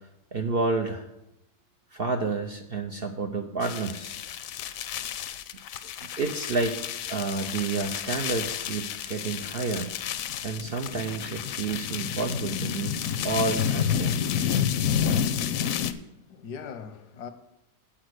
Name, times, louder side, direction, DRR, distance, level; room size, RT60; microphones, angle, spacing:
voice 1, 0.3-1.1 1.9-4.2 6.2-6.8 7.1-9.9 10.4-13.0 13.2-14.2, right 3 dB, 60° right, 0.6 m, -30 dB
sound 1, 3.6-15.9, left 8 dB, 70° left, 0.9 m, -30 dB
voice 2, 15.8-17.3, left 6 dB, 85° left, 1.4 m, -41 dB
8.7 x 5.1 x 7.8 m
omnidirectional pair, 1.7 m